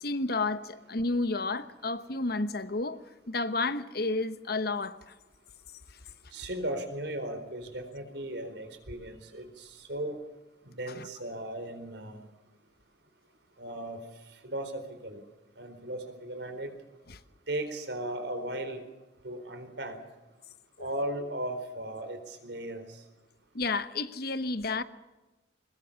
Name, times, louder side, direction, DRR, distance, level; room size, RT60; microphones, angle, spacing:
voice 1, 0.0-3.0 3.3-5.1 11.0-11.1 17.1-17.2 23.5-24.8, left 3 dB, 60° left, 1.2 m, -31 dB
voice 2, 6.3-10.2 10.6-12.3 13.6-15.2 15.6-16.7 17.5-18.8 19.2-20.0 20.8-23.0, right 1 dB, 70° right, 4.2 m, -37 dB
21.5 x 21.0 x 7.1 m
head